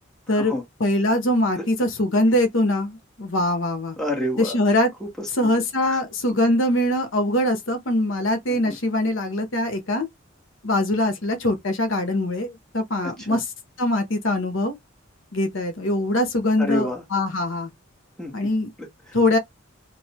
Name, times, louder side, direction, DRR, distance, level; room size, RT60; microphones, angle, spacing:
voice 1, 0.8-3.9 4.4-4.9 5.4-10.1 10.6-13.4 13.8-14.7 15.3-17.7 18.3-18.7 19.1-19.4, left 1 dB, 70° left, 1.0 m, -22 dB
voice 2, 4.0-4.6 5.0-5.5 5.9-6.0 8.5-8.8 13.0-13.4 16.6-17.0 18.2-18.3 18.8-19.2, left 1 dB, 5° left, 1.7 m, -29 dB
3.2 x 2.7 x 4.2 m
head